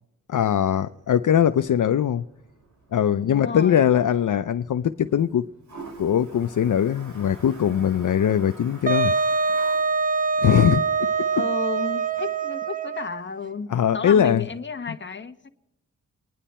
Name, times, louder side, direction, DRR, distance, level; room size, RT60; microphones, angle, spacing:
voice 1, 0.3-2.2 2.9-5.5 6.0-9.1 10.4-10.8 13.7-14.4, left 9 dB, 65° left, 0.6 m, -21 dB
Toilet flush, 0.7-12.3, right 3 dB, 60° right, 5.7 m, -48 dB
voice 2, 3.3-3.8 11.3-15.5, left 5 dB, 35° left, 1.2 m, -33 dB
Wind instrument woodwind instrument, 8.9-13.2, right 5 dB, 25° right, 0.5 m, -24 dB
27.5 x 10.0 x 4.3 m
wide cardioid pair, 90°, 33 cm